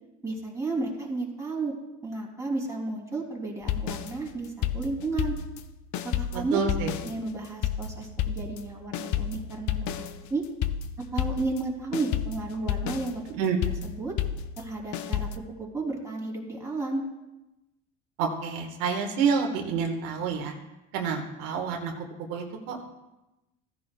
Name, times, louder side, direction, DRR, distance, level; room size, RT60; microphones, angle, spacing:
voice 1, 0.2-1.7 2.0-5.4 6.0-6.6 7.0-10.4 11.1-13.2 13.8-14.1 14.6-17.0, right 3 dB, 10° right, -2 dB, 2.8 m, -33 dB
sound 1, 3.6-5.7 5.9-11.7 11.9-15.4, left 9 dB, 60° left, 0.6 m, -31 dB
voice 2, 6.3-6.9 13.3-13.7 18.2-20.5 20.9-21.9 22.3-22.9, right 6 dB, 80° right, 2 dB, 1.5 m, -28 dB
15.5 x 10.0 x 2.2 m, 0.98 s
supercardioid pair, 110°, 33 cm